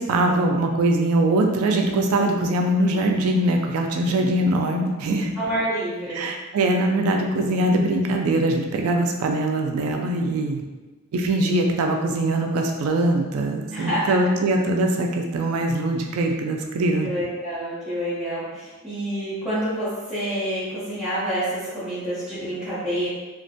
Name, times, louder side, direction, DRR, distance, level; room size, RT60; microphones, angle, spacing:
voice 1, 0.0-5.3 6.1-10.6 11.1-17.1, right 1 dB, 80° right, 2 dB, 0.3 m, -22 dB
voice 2, 5.4-6.2 13.7-14.2 17.0-23.1, equal, ahead, -16 dB, 0.7 m, -28 dB
2.4 x 2.1 x 2.7 m, 1.2 s
head